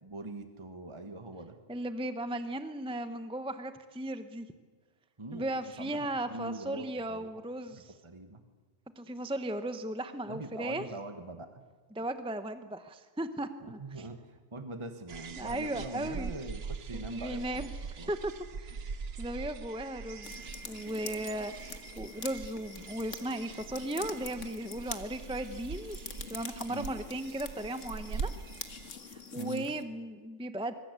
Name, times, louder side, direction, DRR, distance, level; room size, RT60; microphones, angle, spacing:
voice 1, 0.0-1.6 5.2-7.3 7.7-8.4 10.3-11.6 13.6-17.7 18.0-18.1 26.7-26.9 29.3-29.7, right 2 dB, 25° right, 7 dB, 1.5 m, -42 dB
voice 2, 1.7-4.5 5.3-7.9 9.0-10.8 11.9-14.1 15.4-16.3 16.9-17.7 18.1-18.3 18.6-26.0 26.3-28.3 29.1-30.7, right 1 dB, 5° right, 10 dB, 1.0 m, -36 dB
sound 1, 15.1-28.9, right 5 dB, 55° right, 1.2 m, -43 dB
sound 2, 20.2-29.8, left 5 dB, 85° left, 2.0 m, -46 dB
25.5 x 22.5 x 8.3 m, 1.4 s
omnidirectional pair, 1.3 m